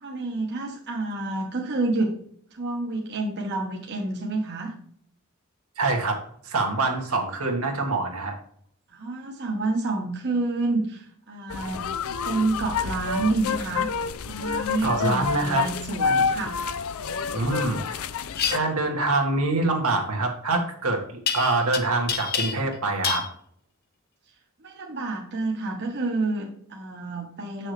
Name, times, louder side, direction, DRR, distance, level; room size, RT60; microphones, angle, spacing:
voice 1, 0.0-2.1 2.5-4.7 8.9-11.8 12.2-13.9 14.2-16.6 24.6-27.7, right 2 dB, 50° right, 0 dB, 1.2 m, -28 dB
voice 2, 5.8-8.4 14.8-15.6 17.3-18.0 18.5-21.0 21.3-23.2, right 2 dB, 75° right, 2 dB, 1.7 m, -25 dB
sound 1, 11.5-18.6, left 6 dB, 65° left, 0.5 m, -28 dB
sound 2, 18.3-18.6 21.3-21.8 22.1-22.8 23.0-23.3, left 7 dB, 45° left, 0.8 m, -27 dB
7.8 x 6.2 x 3.2 m, 0.63 s
head